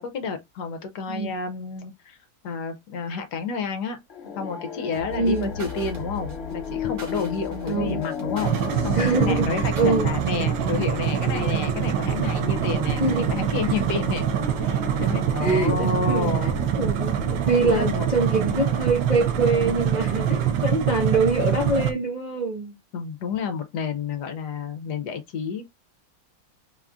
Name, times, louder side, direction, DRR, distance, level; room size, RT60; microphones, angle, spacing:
voice 1, 0.0-2.2 2.4-4.0 4.4-8.6 8.8-14.3 14.6-16.6 17.7-18.1 22.9-25.7, left 5 dB, 70° left, 1.2 m, -30 dB
sound 1, 4.1-20.7, left 6 dB, 55° left, 0.7 m, -36 dB
sound 2, 4.9-10.0, left 1 dB, 65° right, 2.1 m, -38 dB
voice 2, 5.2-5.5 7.7-8.0 8.9-10.1 13.0-13.3 15.4-22.7, right 3 dB, 40° right, 0.6 m, -24 dB
sound 3, 8.4-21.9, right 9 dB, 85° right, 1.4 m, -25 dB
4.2 x 2.4 x 3.5 m
omnidirectional pair, 2.0 m